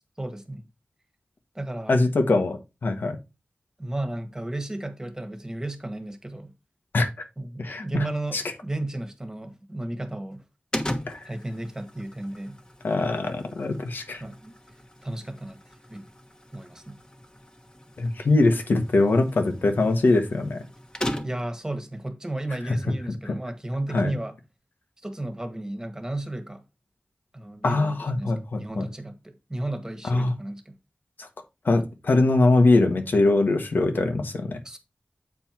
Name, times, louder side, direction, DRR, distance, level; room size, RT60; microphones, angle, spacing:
voice 1, 0.2-0.7 1.5-2.0 3.8-6.5 7.4-10.4 11.2-12.6 14.2-14.5 15.0-15.6 15.9-16.1 16.5-17.0 21.2-24.3 25.0-26.6 27.3-30.8 34.6-34.8, right 1 dB, 20° right, 1.5 m, -33 dB
voice 2, 1.9-3.2 6.9-7.1 7.6-7.8 8.3-8.4 11.1-11.2 12.8-14.2 18.0-20.6 23.9-24.2 27.6-28.9 30.1-30.3 31.2-31.3 31.6-34.6, left 2 dB, 90° left, 1.5 m, -22 dB
sound 1, 10.7-21.6, left 1 dB, 25° left, 1.2 m, -38 dB
8.2 x 4.5 x 4.5 m
wide cardioid pair, 85°, 3 cm